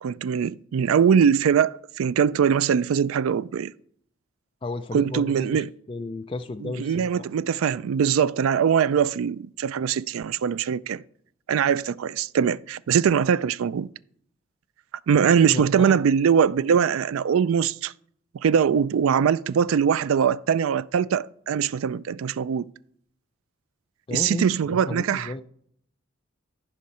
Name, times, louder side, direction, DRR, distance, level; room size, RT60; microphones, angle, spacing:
voice 1, 0.0-3.7 4.9-5.7 6.6-11.0 11.5-13.9 15.1-17.9 18.4-22.7 24.1-25.3, right 7 dB, 90° right, 0.3 m, -22 dB
voice 2, 4.6-7.3 15.5-16.0 24.1-25.4, left 2 dB, 25° left, 0.3 m, -33 dB
14.0 x 5.4 x 4.3 m
head